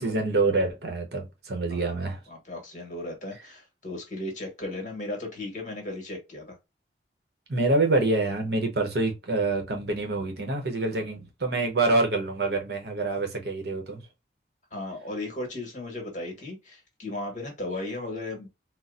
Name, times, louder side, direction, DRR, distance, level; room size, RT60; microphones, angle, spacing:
voice 1, 0.0-2.2 7.5-14.0, right 2 dB, 60° right, 0.8 m, -26 dB
voice 2, 2.3-6.6 14.7-18.5, left 2 dB, 40° left, 1.3 m, -36 dB
4.1 x 2.0 x 2.4 m
head